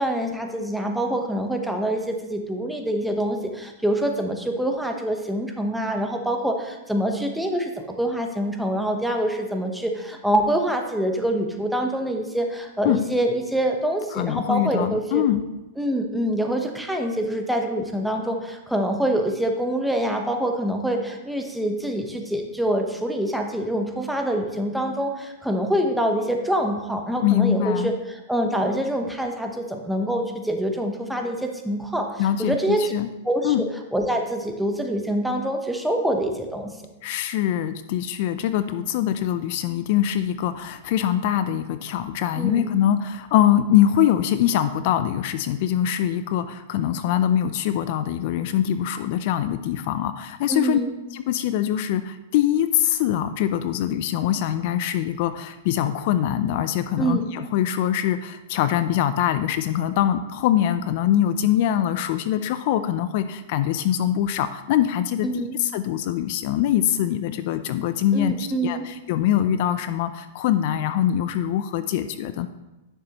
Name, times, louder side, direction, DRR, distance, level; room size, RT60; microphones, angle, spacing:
voice 1, 0.0-15.2 15.8-32.9 33.2-33.5 33.9-36.7 42.4-42.7 50.5-50.9 57.0-57.3 65.2-65.6 68.1-68.9, right 1 dB, ahead, 3 dB, 0.9 m, -25 dB
voice 2, 14.1-15.4 27.2-27.9 32.2-33.1 33.4-33.6 37.0-50.8 51.1-72.5, left 11 dB, 55° left, 11 dB, 0.4 m, -23 dB
9.9 x 6.7 x 2.9 m, 1.0 s
hypercardioid pair, 130°, 0 cm